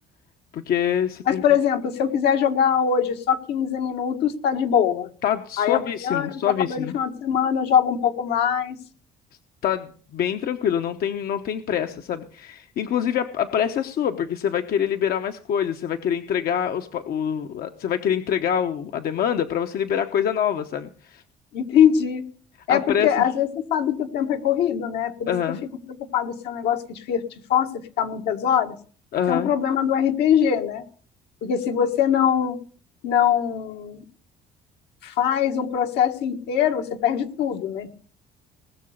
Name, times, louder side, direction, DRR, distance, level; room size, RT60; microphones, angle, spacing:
voice 1, 0.5-1.4 5.2-6.9 9.6-21.2 22.7-23.3 25.3-25.6 29.1-29.5, left 9 dB, 65° left, 7 dB, 0.9 m, -25 dB
voice 2, 1.3-5.1 5.6-8.8 21.5-22.2 22.7-25.3 25.9-26.8 27.1-27.2 27.5-27.7 28.0-28.8 29.3-30.8 31.4-32.6 33.0-34.0 35.0-37.9, left 8 dB, 80° left, 4 dB, 1.7 m, -22 dB
20.0 x 6.8 x 6.5 m, 0.43 s
cardioid pair, 110°, 17 cm